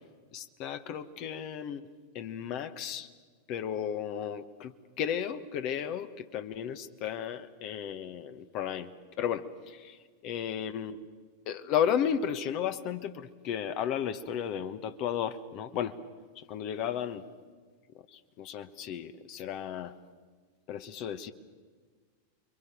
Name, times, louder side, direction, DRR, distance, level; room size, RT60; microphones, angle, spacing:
voice 1, 0.3-1.8 2.1-3.1 3.5-8.9 9.2-11.0 11.5-16.0 16.3-17.2 18.1-19.9 20.7-21.3, left 9 dB, 40° left, 11 dB, 1.2 m, -34 dB
29.5 x 23.5 x 6.9 m, 1.5 s
figure-of-eight pair, 90°, 0 cm